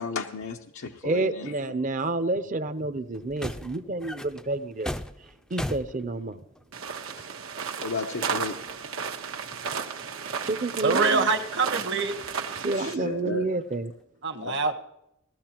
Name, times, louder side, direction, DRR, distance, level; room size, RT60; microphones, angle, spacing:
voice 1, 0.0-1.6 7.2-7.3 7.8-8.6 8.8-9.2 12.7-13.4 14.4-14.6, left 4 dB, 85° left, 3 dB, 0.7 m, -34 dB
voice 2, 1.0-4.9 5.5-6.4 10.4-11.3 12.5-13.9, right 2 dB, 40° right, 11 dB, 0.6 m, -29 dB
sound 1, 2.7-2.8 3.1-6.7 7.7-7.8 8.3-9.7 10.1-11.8 12.2-12.3 13.5-14.0, left 1 dB, 5° left, 0.4 m, -39 dB
sound 2, 6.7-12.9, right 6 dB, 90° right, 1.2 m, -33 dB
voice 3, 10.8-12.2 14.2-14.7, right 4 dB, 55° right, 6 dB, 1.1 m, -25 dB
18.0 x 13.0 x 3.0 m, 0.84 s
head